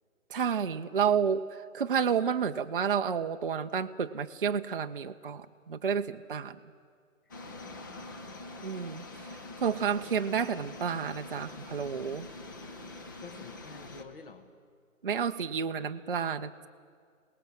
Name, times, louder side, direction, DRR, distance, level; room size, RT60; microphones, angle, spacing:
voice 1, 0.3-6.6 8.6-9.3 9.6-12.3 15.0-16.7, right 7 dB, 40° right, 8 dB, 0.5 m, -30 dB
sound 1, 7.3-14.0, left 2 dB, 15° left, 0.7 m, -45 dB
voice 2, 7.4-8.0 12.9-14.5, left 5 dB, 40° left, 8 dB, 1.7 m, -50 dB
27.5 x 18.5 x 6.4 m, 2.1 s
figure-of-eight pair, 140°, 41 cm